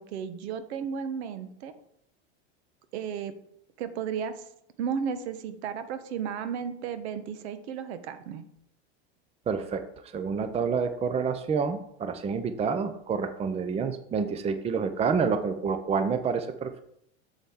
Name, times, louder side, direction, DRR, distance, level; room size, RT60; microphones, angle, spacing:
voice 1, 0.0-1.7 2.9-3.3 3.8-4.4 4.8-8.4, right 7 dB, 75° right, 11 dB, 1.0 m, -34 dB
voice 2, 9.5-9.8 10.1-16.8, right 5 dB, 20° right, 10 dB, 0.6 m, -28 dB
7.2 x 7.1 x 3.7 m, 0.71 s
supercardioid pair, 120°, 34 cm